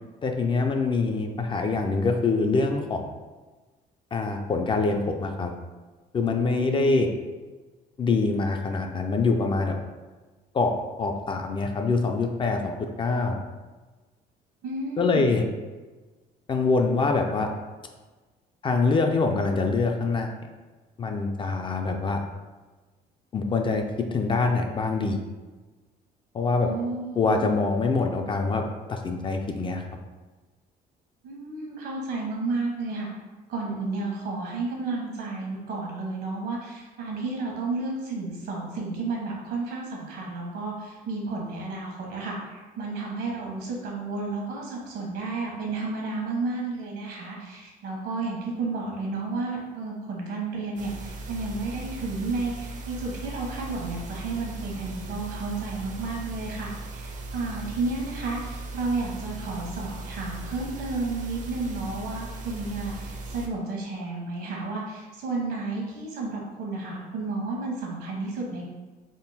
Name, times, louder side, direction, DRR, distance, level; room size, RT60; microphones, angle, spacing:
voice 1, 0.2-3.0 4.1-5.5 6.1-7.1 8.0-9.8 10.5-10.7 11.0-13.4 15.0-15.4 16.5-17.5 18.6-20.3 21.0-22.2 23.3-23.8 24.1-25.2 26.3-26.7 27.2-28.6 28.9-29.8, left 3 dB, 30° left, 4 dB, 0.4 m, -24 dB
voice 2, 6.6-6.9 14.6-15.3 26.6-27.5 31.2-33.1 33.5-68.7, right 3 dB, 75° right, -2 dB, 1.1 m, -32 dB
sound 1, 50.8-63.5, right 2 dB, 50° right, 0.5 m, -38 dB
3.7 x 2.1 x 4.0 m, 1.3 s
cardioid pair, 110°, 17 cm